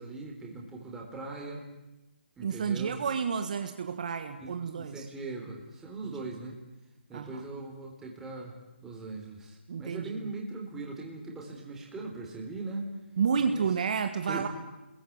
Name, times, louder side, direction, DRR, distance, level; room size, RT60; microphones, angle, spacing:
voice 1, 0.0-1.7 2.4-3.0 4.4-6.6 7.1-8.5 8.8-12.9 13.4-13.7 14.3-14.5, right 3 dB, 5° right, 0 dB, 3.8 m, -40 dB
voice 2, 2.4-5.1 7.1-7.4 9.7-10.1 13.2-14.5, right 6 dB, 40° right, 8 dB, 1.5 m, -30 dB
29.0 x 21.5 x 8.7 m, 1.0 s
hypercardioid pair, 165°, 6 cm